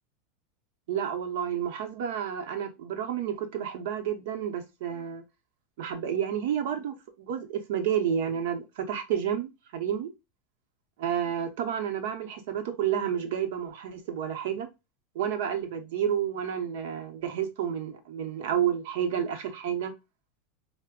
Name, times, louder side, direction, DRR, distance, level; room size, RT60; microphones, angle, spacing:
voice 1, 0.9-5.2 5.8-10.1 11.0-14.7 15.1-19.9, right 9 dB, 75° right, 0.8 m, -30 dB
5.0 x 2.1 x 2.3 m
supercardioid pair, 130°, 0 cm